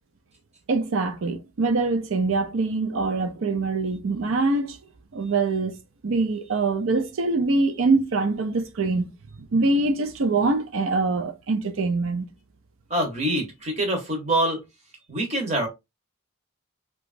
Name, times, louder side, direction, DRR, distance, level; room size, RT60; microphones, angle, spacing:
voice 1, 0.7-4.8 5.1-5.7 6.0-9.1 9.5-12.3, right 3 dB, 70° right, 0.5 m, -24 dB
voice 2, 12.9-14.6 15.1-15.7, right 1 dB, 30° right, 0.9 m, -25 dB
2.9 x 2.3 x 2.4 m
head